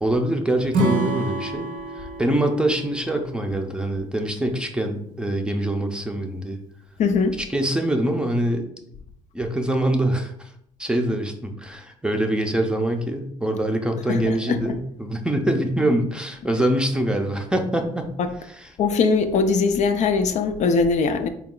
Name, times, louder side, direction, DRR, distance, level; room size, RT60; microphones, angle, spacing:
voice 1, 0.0-1.7 2.0-6.6 7.5-8.6 9.3-10.5 10.8-18.1, right 1 dB, 5° right, 0.5 m, -24 dB
Acoustic guitar / Strum, 0.7-4.0, right 2 dB, 65° right, 0.7 m, -28 dB
voice 2, 7.0-7.4 14.1-14.8 18.2-18.3 18.8-21.3, left 4 dB, 55° left, 0.4 m, -21 dB
4.0 x 2.3 x 3.7 m
cardioid pair, 95°, 15 cm